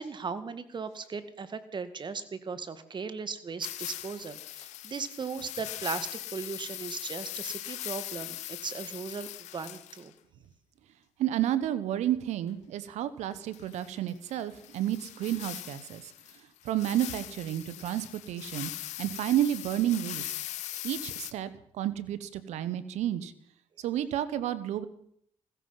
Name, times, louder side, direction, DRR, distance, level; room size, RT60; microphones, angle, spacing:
voice 1, 0.0-9.3 9.5-10.1, right 5 dB, 40° right, 12 dB, 1.9 m, -37 dB
sound 1, 3.6-10.1 13.5-21.3, left 14 dB, 80° left, 1.1 m, -40 dB
voice 2, 11.2-16.1 16.6-18.7 19.0-20.3 20.8-21.5 21.8-23.3 23.8-24.9, right 12 dB, 80° right, 15 dB, 1.3 m, -31 dB
15.5 x 15.5 x 5.9 m, 0.68 s
supercardioid pair, 75°, 12 cm